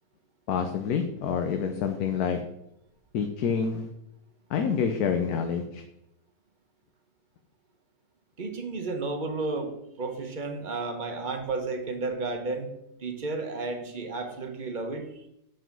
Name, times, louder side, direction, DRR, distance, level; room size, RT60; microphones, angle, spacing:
voice 1, 0.5-2.4 3.1-3.9 4.5-5.8, left 6 dB, 75° left, 6 dB, 1.2 m, -27 dB
voice 2, 8.4-9.7 10.0-12.7 13.0-15.3, right 3 dB, 35° right, 5 dB, 1.0 m, -32 dB
7.6 x 5.1 x 5.9 m, 0.81 s
omnidirectional pair, 1.6 m